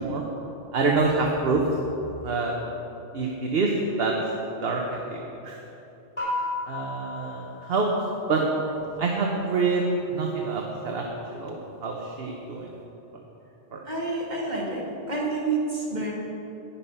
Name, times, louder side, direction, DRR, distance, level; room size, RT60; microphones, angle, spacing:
voice 1, 0.7-1.6 2.2-2.5 3.1-3.7 4.0-5.6 6.7-7.9 8.3-8.5 9.0-9.8 10.1-11.0 11.3-12.8 13.7-13.8, right 4 dB, 60° right, 0 dB, 1.2 m, -26 dB
sound 1, 6.2-8.9, left 2 dB, 30° left, 3.4 m, -34 dB
voice 2, 13.8-16.1, right 3 dB, 40° right, -4 dB, 2.2 m, -28 dB
11.5 x 10.0 x 5.6 m, 3.0 s
omnidirectional pair, 1.2 m